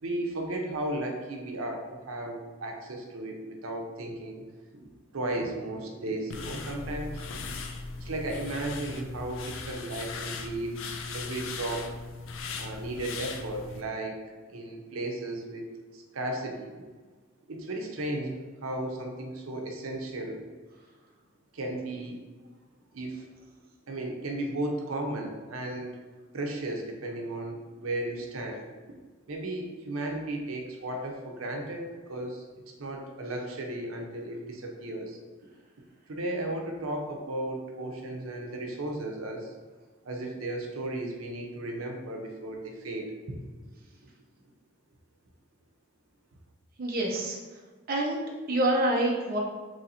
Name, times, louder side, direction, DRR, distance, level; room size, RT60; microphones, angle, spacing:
voice 1, 0.0-4.4 4.7-7.4 8.0-10.8 11.1-11.9 12.6-14.2 14.5-15.7 15.9-16.9 17.5-18.4 18.6-20.4 21.5-22.2 22.9-23.2 23.9-25.9 26.3-28.6 29.3-32.5 32.8-35.2 36.1-39.5 40.0-43.6, right 1 dB, 90° right, 1 dB, 0.6 m, -35 dB
sound 1, 6.3-13.8, left 4 dB, 70° left, 0.4 m, -38 dB
voice 2, 46.8-47.4 47.9-49.4, right 1 dB, 45° right, -2 dB, 0.5 m, -27 dB
3.1 x 2.6 x 4.1 m, 1.4 s
head